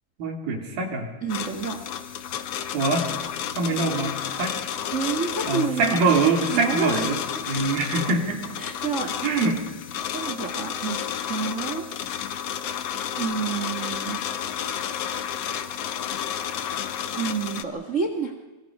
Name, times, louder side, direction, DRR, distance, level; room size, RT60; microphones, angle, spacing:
voice 1, 0.2-1.1 2.7-3.1 3.5-4.6 5.5-8.4 9.2-9.6, right 3 dB, 75° right, 3 dB, 4.8 m, -24 dB
voice 2, 1.2-1.8 4.9-6.0 6.5-7.2 8.6-9.4 10.0-11.9 13.2-14.2 17.1-18.3, right 5 dB, 50° right, 5 dB, 0.9 m, -29 dB
sound 1, 1.3-17.6, left 9 dB, 65° left, 1.6 m, -31 dB
25.0 x 23.0 x 5.4 m, 1.2 s
omnidirectional pair, 4.2 m